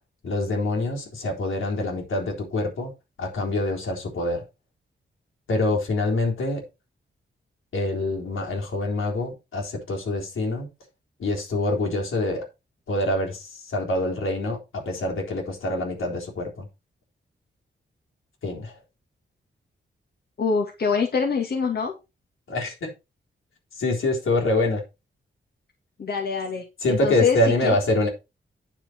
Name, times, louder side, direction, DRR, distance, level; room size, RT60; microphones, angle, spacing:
voice 1, 0.2-2.9 3.2-4.4 5.5-6.6 7.7-10.7 11.2-12.5 12.9-16.7 18.4-18.8 22.5-22.9 23.8-24.8 26.8-28.1, left 2 dB, 85° left, 3.8 m, -25 dB
voice 2, 20.4-21.9 26.0-27.4 27.6-27.7, left 5 dB, 50° left, 2.1 m, -25 dB
9.7 x 6.8 x 4.5 m
wide cardioid pair, 160°, 20 cm